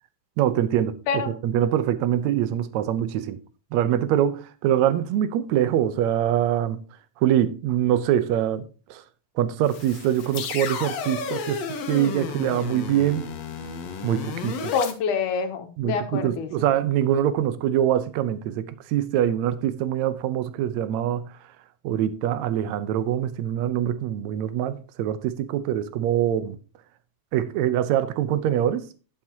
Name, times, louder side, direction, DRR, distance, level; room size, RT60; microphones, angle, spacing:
voice 1, 0.4-3.4 3.7-6.8 7.2-9.0 9.4-13.3 14.0-14.7 15.8-21.3 21.8-26.6 27.3-28.9, right 11 dB, 75° right, 2.0 m, -24 dB
sound 1, 9.6-14.9, left 6 dB, 65° left, 2.3 m, -32 dB
voice 2, 14.7-16.5, left 6 dB, 90° left, 2.7 m, -26 dB
11.0 x 9.5 x 2.8 m
omnidirectional pair, 3.4 m